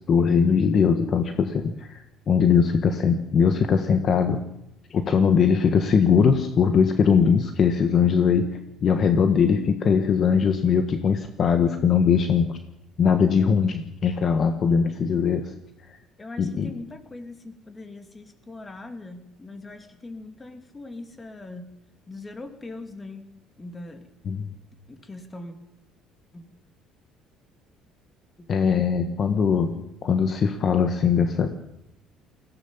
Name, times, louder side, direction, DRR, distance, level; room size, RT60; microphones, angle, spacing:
voice 1, 0.0-4.4 4.9-12.6 13.0-15.5 15.9-16.0 16.4-16.8 24.2-24.5 28.5-31.5, left 6 dB, 40° left, 7 dB, 1.5 m, -21 dB
voice 2, 9.4-9.8 15.4-15.6 16.2-21.7 22.1-24.1 24.9-25.5 26.3-26.4 28.4-28.5, left 2 dB, 15° left, 7 dB, 2.7 m, -41 dB
21.5 x 16.5 x 7.3 m, 0.83 s
cardioid pair, 140°, 0 cm